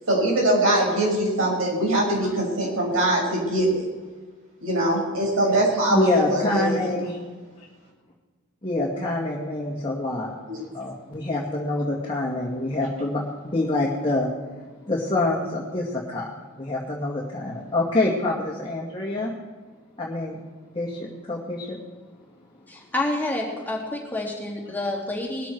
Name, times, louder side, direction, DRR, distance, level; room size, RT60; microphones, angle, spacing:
voice 1, 0.1-3.9 4.6-6.7 10.5-10.6, right 1 dB, 75° right, -2 dB, 6.0 m, -22 dB
voice 2, 5.9-7.2 8.6-10.4 10.7-13.2 13.5-14.3 14.9-16.3 16.6-19.3 20.0-20.4 20.7-21.8, left 2 dB, 25° left, -3 dB, 2.1 m, -26 dB
voice 3, 22.7-25.5, left 2 dB, 10° left, -3 dB, 3.3 m, -28 dB
21.0 x 13.0 x 4.6 m, 1.4 s
head